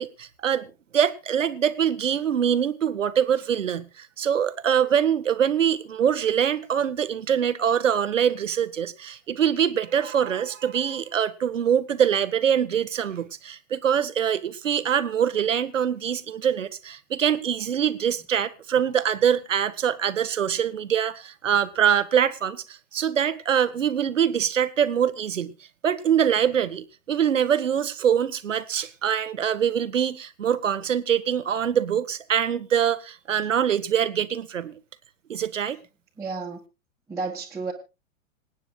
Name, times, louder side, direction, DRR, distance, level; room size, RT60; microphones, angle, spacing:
voice 1, 0.0-25.5 25.8-34.8 35.3-35.8, right 8 dB, 70° right, 1.3 m, -24 dB
voice 2, 36.2-36.6 37.1-37.7, right 4 dB, 10° right, 1.8 m, -31 dB
27.0 x 9.4 x 2.4 m
figure-of-eight pair, 105°, 39 cm